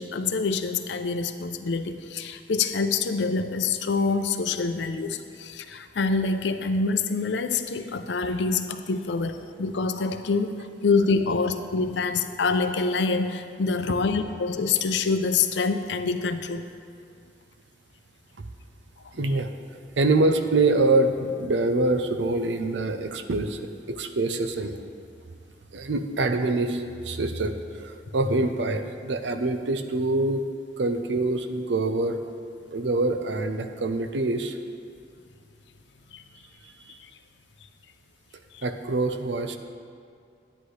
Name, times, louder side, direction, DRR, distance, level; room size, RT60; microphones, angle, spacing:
voice 1, 0.0-16.7 36.1-36.2 38.5-38.6, left 4 dB, 80° left, 9 dB, 0.5 m, -26 dB
voice 2, 19.1-19.5 20.0-24.8 25.7-30.4 30.8-32.2 32.7-34.6 36.9-37.0 38.6-39.6, right 2 dB, 90° right, 8 dB, 0.6 m, -25 dB
10.5 x 9.6 x 3.2 m, 2.3 s
head